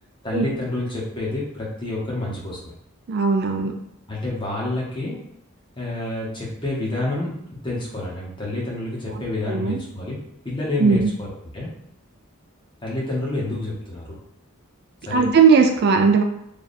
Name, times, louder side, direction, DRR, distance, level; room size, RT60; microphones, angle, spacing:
voice 1, 0.2-2.7 4.1-5.3 5.8-10.2 10.4-11.7 12.8-14.2 15.0-15.3, left 2 dB, 20° left, -5 dB, 1.0 m, -28 dB
voice 2, 3.1-3.7 9.1-9.8 10.8-11.1 15.1-16.2, right 5 dB, 50° right, 4 dB, 0.3 m, -18 dB
3.3 x 2.4 x 4.1 m, 0.77 s
head